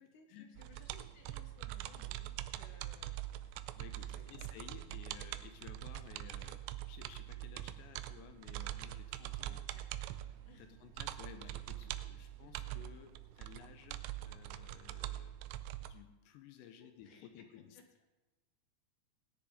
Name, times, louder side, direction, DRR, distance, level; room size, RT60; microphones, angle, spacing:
voice 1, 0.0-3.8 4.1-4.5 9.4-10.1 10.4-10.8 12.1-13.1 16.8-17.8, left 5 dB, 70° left, 4 dB, 2.0 m, -63 dB
sound 1, 0.6-15.9, right 14 dB, 90° right, 2.7 m, -44 dB
voice 2, 3.7-9.6 10.6-15.3 15.8-17.8, left 9 dB, 90° left, 7 dB, 3.3 m, -56 dB
19.0 x 10.5 x 3.6 m, 1.2 s
omnidirectional pair, 4.9 m